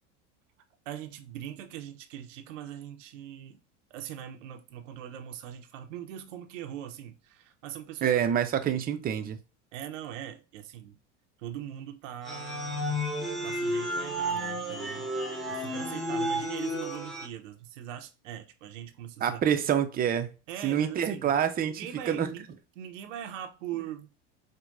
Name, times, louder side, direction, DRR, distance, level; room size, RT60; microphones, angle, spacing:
voice 1, 0.9-3.6 3.9-8.1 8.6-8.7 9.7-11.0 11.4-13.1 13.4-15.1 15.5-19.4 20.5-21.3 21.6-22.4 22.8-24.1, right 10 dB, 85° right, 0.7 m, -41 dB
voice 2, 8.0-9.4 19.2-20.3 20.6-22.3, right 9 dB, 25° right, 0.5 m, -27 dB
sound 1, 12.2-17.3, equal, ahead, 0.9 m, -32 dB
4.6 x 2.2 x 2.4 m
supercardioid pair, 105°, 36 cm